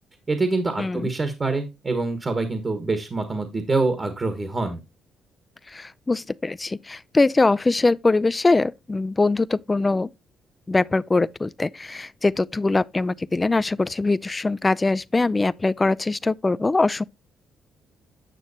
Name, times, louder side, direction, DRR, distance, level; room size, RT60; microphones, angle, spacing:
voice 1, 0.3-4.8, right 3 dB, 35° right, 1.4 m, -25 dB
voice 2, 0.8-1.1 5.7-10.1 10.7-17.0, left 3 dB, 20° left, 0.4 m, -22 dB
9.1 x 6.3 x 2.8 m
cardioid pair, 80°, 0 cm